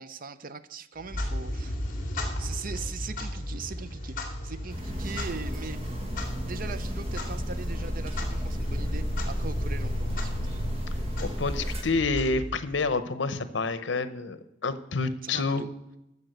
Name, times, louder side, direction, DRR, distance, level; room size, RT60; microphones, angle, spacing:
voice 1, 0.0-2.0 2.4-4.2 4.4-5.9 6.4-10.6 15.2-15.7, right 5 dB, 50° right, 14 dB, 0.6 m, -40 dB
Clock, 1.0-12.9, left 1 dB, 50° left, 2.5 m, -35 dB
sound 1, 4.7-11.8, equal, 35° right, 1.8 m, -33 dB
voice 2, 11.2-15.6, left 3 dB, 85° left, 13 dB, 0.9 m, -28 dB
14.0 x 5.3 x 7.9 m, 0.89 s
head